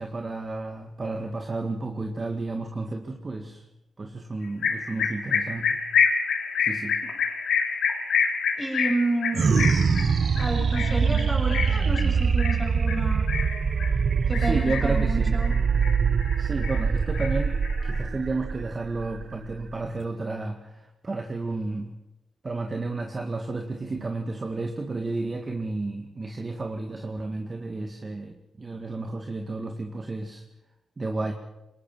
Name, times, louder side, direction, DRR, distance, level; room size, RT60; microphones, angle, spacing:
voice 1, 0.0-3.6 4.0-5.8 6.6-7.0 14.3-15.4 16.4-21.9 22.4-30.4 31.0-31.3, right 3 dB, 30° right, 3 dB, 2.0 m, -32 dB
sound 1, 4.6-14.0 14.3-15.0 15.4-16.3 16.6-18.0, left 6 dB, 85° left, 3.6 m, -27 dB
voice 2, 8.6-9.7 10.4-13.2 14.3-15.5, right 2 dB, 10° right, 2 dB, 6.9 m, -30 dB
sound 2, 9.3-20.0, right 5 dB, 50° right, 0.9 m, -24 dB
23.5 x 20.0 x 6.2 m, 0.95 s
cardioid pair, 85°, 0 cm